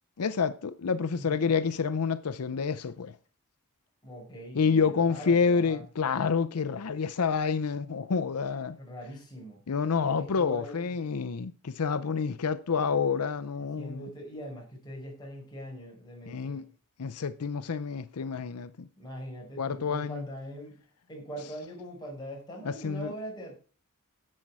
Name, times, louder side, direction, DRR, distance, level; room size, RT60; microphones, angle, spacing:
voice 1, 0.2-3.2 4.5-8.8 9.7-14.1 16.3-16.7 17.0-18.9 19.6-20.3 22.6-23.1, left 5 dB, 90° left, 0.6 m, -28 dB
voice 2, 1.1-1.5 4.0-5.8 8.8-9.6 10.0-10.9 13.5-16.7 19.0-20.8 21.1-23.6, equal, 20° left, 5.0 m, -42 dB
11.0 x 7.5 x 4.7 m
head